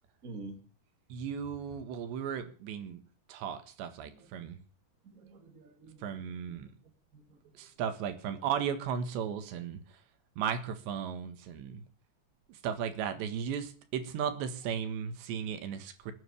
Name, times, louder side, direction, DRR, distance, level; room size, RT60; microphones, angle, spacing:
voice 1, 0.2-0.7 4.1-4.5 5.0-6.6 6.8-7.7, right 3 dB, 25° right, 1.9 m, -50 dB
voice 2, 1.1-3.0 3.3-4.6 6.0-6.7 7.6-10.0 10.4-11.8 12.5-16.1, right 8 dB, 75° right, 3.7 m, -36 dB
20.5 x 9.9 x 6.9 m
omnidirectional pair, 5.2 m